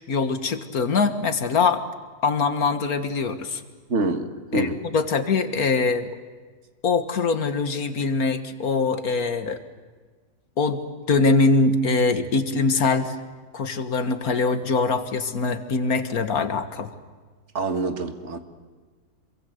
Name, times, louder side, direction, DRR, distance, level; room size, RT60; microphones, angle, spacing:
voice 1, 0.1-1.8 2.2-3.6 4.5-6.1 6.8-9.6 10.6-10.8 11.1-13.2 13.5-16.9, left 4 dB, 70° left, 8 dB, 2.0 m, -23 dB
voice 2, 3.9-4.7 17.5-18.4, right 2 dB, 50° right, 6 dB, 1.9 m, -26 dB
27.0 x 23.0 x 8.0 m, 1.5 s
omnidirectional pair, 1.6 m